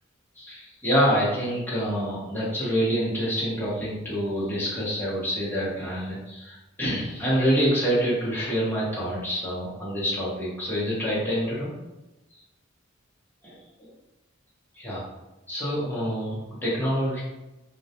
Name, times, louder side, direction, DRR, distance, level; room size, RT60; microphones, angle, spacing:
voice 1, 0.4-11.7 13.4-13.5 14.8-15.0 15.5-17.2, equal, 10° left, -9 dB, 0.8 m, -26 dB
2.2 x 2.1 x 2.7 m, 1.0 s
head